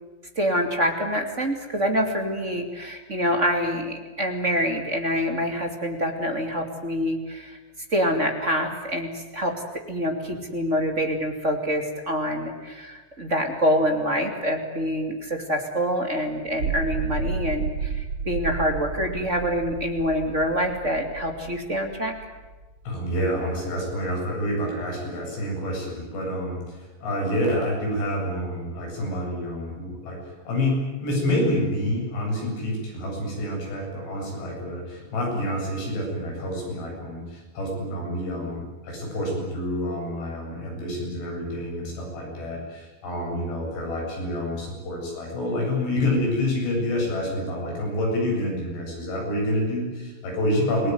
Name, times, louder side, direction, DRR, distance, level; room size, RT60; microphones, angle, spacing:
voice 1, 0.4-7.6 7.9-9.5 9.9-22.1, equal, 20° right, 3 dB, 2.1 m, -26 dB
sound 1, 16.4-22.9, right 4 dB, 55° right, 1.4 m, -32 dB
voice 2, 22.9-50.9, left 1 dB, 70° left, 0 dB, 10.5 m, -28 dB
28.0 x 19.0 x 9.6 m, 1.2 s
omnidirectional pair, 5.1 m